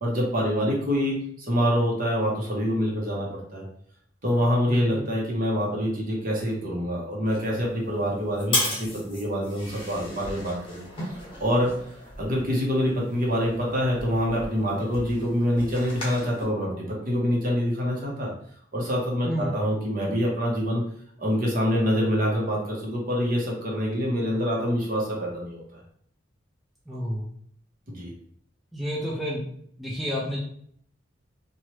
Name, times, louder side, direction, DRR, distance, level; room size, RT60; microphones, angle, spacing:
voice 1, 0.0-3.7 4.2-10.8 11.4-11.7 12.2-18.3 18.7-20.8 21.2-25.8 27.9-28.1, equal, 45° right, -3 dB, 0.9 m, -26 dB
voice 2, 4.7-5.1 19.3-19.5 26.9-27.3 28.7-29.5 29.8-30.4, equal, ahead, -5 dB, 0.4 m, -30 dB
sound 1, 7.3-16.4, left 2 dB, 25° left, 1.0 m, -36 dB
2.9 x 2.3 x 3.1 m, 0.63 s
head